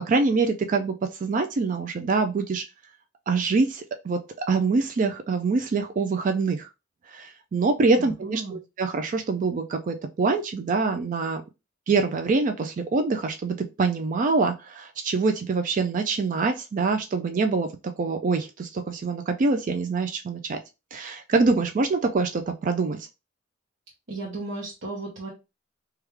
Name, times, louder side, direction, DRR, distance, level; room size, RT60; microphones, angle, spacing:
voice 1, 0.1-0.9 1.2-2.6 3.3-4.2 4.5-6.7 7.1-11.4 11.9-17.7 18.0-20.6 20.9-23.0, right 4 dB, 40° right, 7 dB, 0.3 m, -25 dB
voice 2, 8.0-8.6 24.1-25.3, right 2 dB, 65° right, -3 dB, 0.8 m, -35 dB
3.3 x 2.3 x 3.1 m, 0.26 s
head